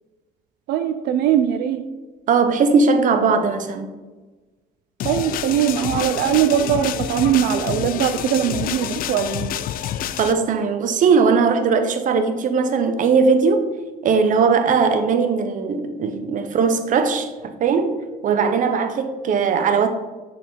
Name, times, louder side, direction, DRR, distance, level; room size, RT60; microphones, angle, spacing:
voice 1, 0.7-1.9 5.0-9.5, right 10 dB, 80° right, 0.4 m, -21 dB
voice 2, 2.3-3.9 10.2-13.7 14.0-19.9, right 5 dB, 50° right, 0.7 m, -19 dB
sound 1, 5.0-10.3, left 11 dB, 60° left, 0.4 m, -28 dB
6.4 x 4.2 x 4.4 m
cardioid pair, 110°, 17 cm